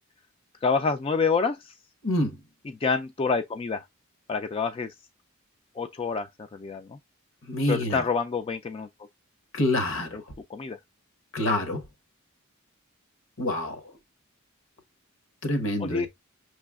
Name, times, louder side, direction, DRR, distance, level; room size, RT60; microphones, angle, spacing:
voice 1, 0.6-1.7 2.6-3.8 4.3-4.9 5.8-7.0 7.7-8.9 10.1-10.2 10.5-10.8 15.8-16.1, left 5 dB, 25° left, 0.3 m, -27 dB
voice 2, 2.0-2.4 7.5-8.0 9.5-10.2 11.3-11.8 13.4-13.8 15.4-16.1, left 1 dB, 65° left, 1.1 m, -26 dB
6.0 x 3.1 x 2.3 m
head